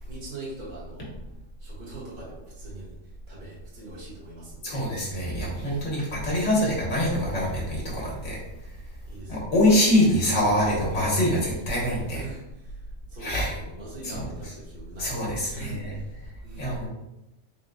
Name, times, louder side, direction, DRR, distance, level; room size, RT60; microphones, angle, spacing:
voice 1, 0.0-2.9 3.3-6.7 9.0-9.4 12.1-12.8 13.1-16.8, right 3 dB, 45° right, -7 dB, 1.4 m, -43 dB
voice 2, 4.6-8.4 9.3-12.2 13.2-13.6 14.0-14.5 15.0-16.0 16.6-16.9, left 1 dB, 85° left, -4 dB, 1.6 m, -24 dB
4.0 x 2.3 x 3.9 m, 0.91 s
omnidirectional pair, 1.2 m